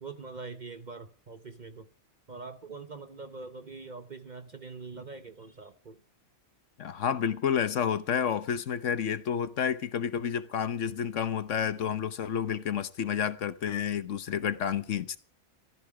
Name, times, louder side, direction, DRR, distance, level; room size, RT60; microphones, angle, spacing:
voice 1, 0.0-1.9 2.3-6.0, right 4 dB, 40° right, 0.8 m, -43 dB
voice 2, 6.8-15.2, left 8 dB, 65° left, 1.1 m, -30 dB
15.5 x 14.0 x 4.8 m
omnidirectional pair, 1.5 m